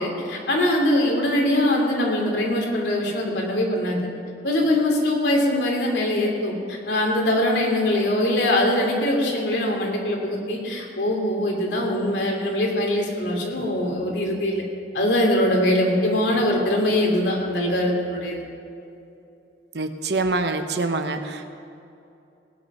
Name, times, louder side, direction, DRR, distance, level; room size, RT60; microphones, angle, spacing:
voice 1, 0.0-4.0 4.4-14.6 14.9-18.4, left 1 dB, 80° left, 0 dB, 3.0 m, -22 dB
voice 2, 19.7-21.5, right 3 dB, 70° right, 7 dB, 1.0 m, -25 dB
19.0 x 9.9 x 5.7 m, 2.7 s
head